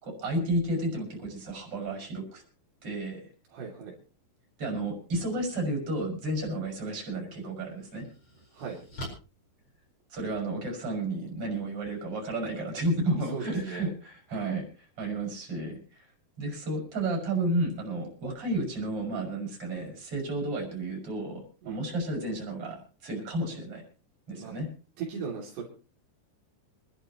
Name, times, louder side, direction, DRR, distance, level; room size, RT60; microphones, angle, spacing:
voice 1, 0.0-2.4 2.8-3.2 4.6-8.1 10.1-16.0 16.4-23.8 24.3-24.7, right 1 dB, 35° right, 0 dB, 6.4 m, -32 dB
voice 2, 3.5-3.9 8.5-8.8 13.3-13.9 21.6-21.8 24.4-24.5 25.0-25.6, right 5 dB, 75° right, -2 dB, 5.0 m, -37 dB
sound 1, 7.5-10.5, equal, 30° left, 5.3 m, -45 dB
27.0 x 12.0 x 3.0 m, 0.36 s
omnidirectional pair, 4.9 m